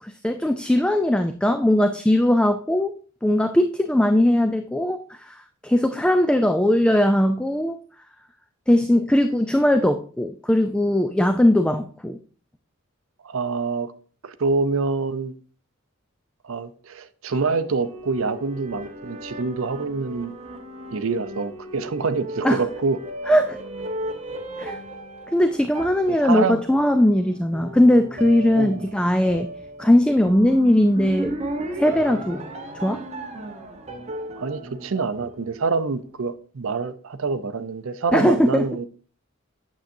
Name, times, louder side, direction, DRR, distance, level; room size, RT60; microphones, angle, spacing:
voice 1, 0.0-3.0 3.2-7.8 8.7-12.2 22.4-22.6 23.3-23.6 24.6-24.8 25.3-29.5 29.8-31.4 31.8-32.4 32.8-33.0 38.1-38.6, left 1 dB, 5° left, 0.3 m, -19 dB
voice 2, 13.2-13.9 14.2-15.3 16.4-20.3 20.9-23.0 26.1-26.6 28.5-29.0 34.4-38.9, right 4 dB, 70° right, 0.6 m, -26 dB
sound 1, 17.3-35.9, right 1 dB, 30° right, 1.1 m, -36 dB
9.0 x 7.1 x 2.6 m
head